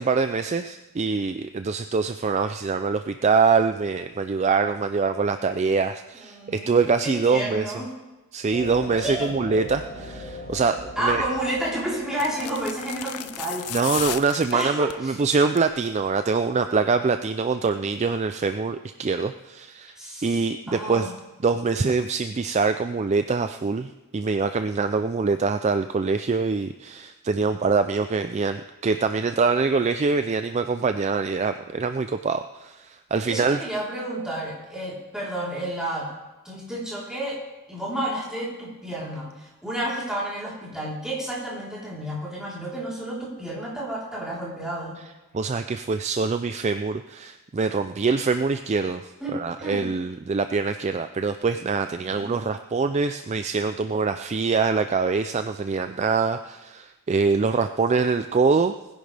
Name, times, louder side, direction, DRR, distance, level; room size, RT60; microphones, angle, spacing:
voice 1, 0.0-7.7 8.3-11.2 13.7-19.9 20.2-21.1 21.4-33.6 45.3-58.7, right 4 dB, 30° right, 9 dB, 0.3 m, -24 dB
voice 2, 6.2-6.7 7.0-7.9 9.0-9.3 11.0-13.7 14.5-15.2 20.0-21.2 33.3-36.1 36.4-37.4 37.7-45.0 49.2-49.9 52.0-52.3, right 1 dB, 5° right, -7 dB, 3.8 m, -31 dB
sound 1, 8.5-13.9, left 1 dB, 20° left, 4.4 m, -40 dB
sound 2, 11.1-11.3 12.1-15.0 15.4-15.8 16.0-16.1, left 12 dB, 80° left, 0.5 m, -34 dB
20.5 x 10.5 x 3.4 m, 1.1 s
head